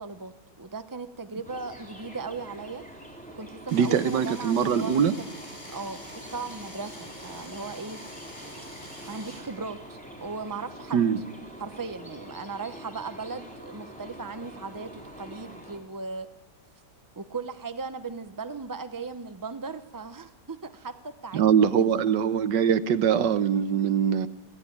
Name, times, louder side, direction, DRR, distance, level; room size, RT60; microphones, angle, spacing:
voice 1, 0.0-2.9 3.4-5.1 5.7-8.0 9.1-11.0 11.6-16.3 17.2-21.9, right 4 dB, 35° right, 9 dB, 0.3 m, -37 dB
sound 1, 1.4-15.8, right 1 dB, 5° left, 3.8 m, -45 dB
sound 2, 3.7-9.4, left 1 dB, 45° left, 6.5 m, -45 dB
voice 2, 3.7-5.1 10.9-11.2 21.3-24.3, right 8 dB, 85° right, 12 dB, 1.6 m, -22 dB
22.0 x 16.0 x 9.9 m, 1.1 s
omnidirectional pair, 1.8 m